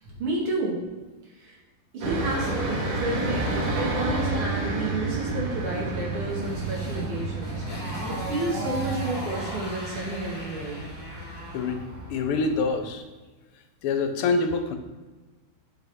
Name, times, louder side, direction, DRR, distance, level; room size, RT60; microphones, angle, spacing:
voice 1, 0.0-0.8 1.4-1.6 1.9-7.7 8.1-10.8, right 2 dB, 75° right, -3 dB, 2.6 m, -31 dB
sound 1, 2.0-12.7, right 2 dB, 45° right, 1.3 m, -32 dB
sound 2, 3.1-10.0, right 4 dB, 90° right, 2.3 m, -35 dB
Motorcycle, 5.8-11.9, right 1 dB, 10° left, 1.6 m, -38 dB
voice 2, 12.1-13.0 13.8-14.8, left 4 dB, 80° left, 7 dB, 1.6 m, -25 dB
8.1 x 5.5 x 3.5 m, 1.2 s
omnidirectional pair, 2.4 m